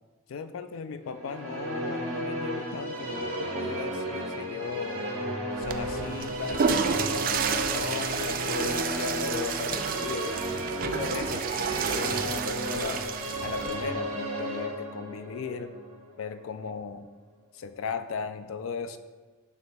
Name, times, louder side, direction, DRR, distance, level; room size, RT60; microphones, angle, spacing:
voice 1, 0.3-5.1 5.6-7.2 7.6-10.5 10.8-13.1 13.4-15.8 16.2-17.1 17.5-19.0, left 5 dB, 75° left, 10 dB, 0.4 m, -37 dB
Musical instrument, 1.1-16.5, right 1 dB, 80° right, 1.4 m, -34 dB
Water / Toilet flush, 5.5-13.9, right 6 dB, 40° right, 0.3 m, -31 dB
7.1 x 6.5 x 2.3 m, 1.3 s
head